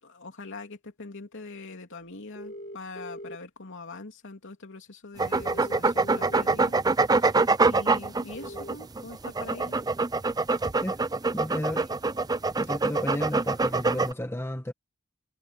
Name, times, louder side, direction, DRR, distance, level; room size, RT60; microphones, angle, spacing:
voice 1, 0.0-9.8, left 3 dB, 60° left, 3.0 m, -43 dB
sound 1, 2.4-3.4 5.4-6.4 8.4-8.8, equal, 40° left, 2.9 m, -41 dB
sound 2, 5.2-14.1, right 3 dB, 20° right, 0.5 m, -25 dB
voice 2, 11.3-11.9 12.6-14.7, left 1 dB, 10° left, 1.8 m, -32 dB
head